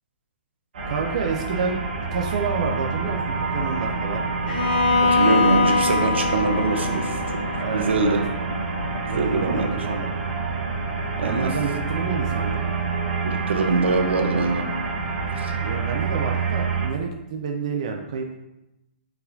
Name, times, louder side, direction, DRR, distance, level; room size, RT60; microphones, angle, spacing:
sound 1, 0.7-16.9, right 4 dB, 50° right, 1.3 m, -27 dB
voice 1, 0.9-1.8 2.1-4.2 7.6-8.2 9.1-10.1 11.2-12.6 15.6-18.3, right 5 dB, 35° right, 2 dB, 0.3 m, -29 dB
Bowed string instrument, 4.5-8.5, left 4 dB, 55° left, 0.8 m, -23 dB
voice 2, 5.1-8.2 9.0-9.7 11.2-11.5 13.2-14.6 15.4-15.5, right 3 dB, 80° right, 4 dB, 0.8 m, -23 dB
4.2 x 4.2 x 2.6 m, 0.94 s
hypercardioid pair, 180°, 6 cm